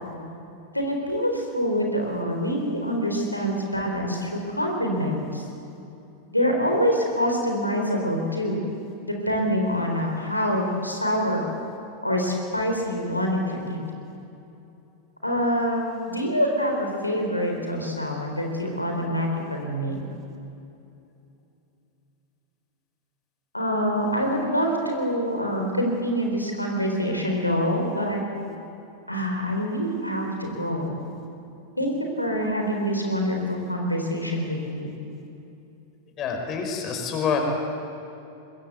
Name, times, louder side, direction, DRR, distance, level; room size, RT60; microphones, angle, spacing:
voice 1, 0.7-5.4 6.3-8.6 9.1-11.4 12.0-13.9 15.2-20.0 23.5-28.2 29.1-30.9 31.8-34.9, equal, 85° left, 1 dB, 3.9 m, -25 dB
voice 2, 36.2-37.4, left 6 dB, 30° left, 3 dB, 5.3 m, -27 dB
25.0 x 22.5 x 8.2 m, 2.8 s
figure-of-eight pair, 90°, 0 cm